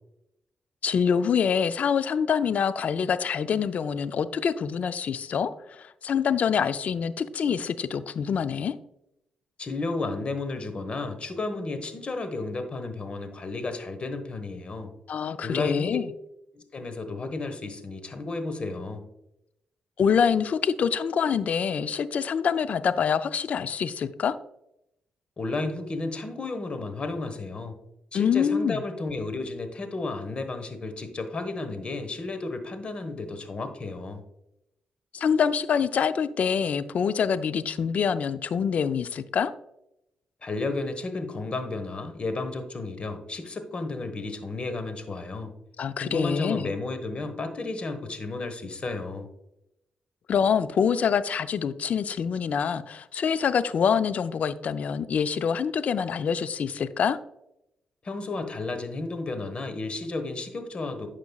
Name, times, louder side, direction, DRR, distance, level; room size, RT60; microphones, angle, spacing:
voice 1, 0.8-8.8 15.1-16.1 20.0-24.4 28.1-28.8 35.1-39.5 45.8-46.7 50.3-57.2, left 7 dB, 65° left, 13 dB, 0.4 m, -25 dB
voice 2, 9.6-14.9 15.4-16.0 16.5-19.0 25.4-27.7 28.1-34.2 40.4-45.5 46.0-49.3 58.0-61.1, left 3 dB, 45° left, 8 dB, 1.2 m, -32 dB
10.5 x 5.2 x 2.3 m, 0.83 s
cardioid pair, 65°, 3 cm